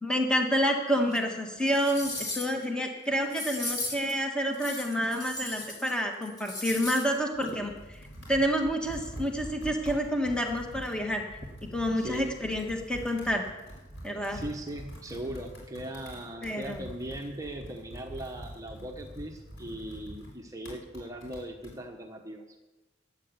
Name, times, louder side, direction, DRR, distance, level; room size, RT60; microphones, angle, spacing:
voice 1, 0.0-8.0 8.3-11.3 11.6-13.4 14.0-14.4 16.4-16.8, equal, 5° left, 2 dB, 1.6 m, -29 dB
sound 1, 1.1-1.2 1.7-2.6 3.3-4.1 4.5-5.9 6.2-7.1 7.4-7.5, left 2 dB, 20° left, 2.4 m, -36 dB
Computer keyboard, 7.2-21.8, equal, 90° left, 4.7 m, -45 dB
voice 2, 12.0-12.4 14.3-22.4, right 1 dB, 15° right, 3 dB, 1.1 m, -39 dB
12.5 x 9.3 x 8.0 m, 1.1 s
head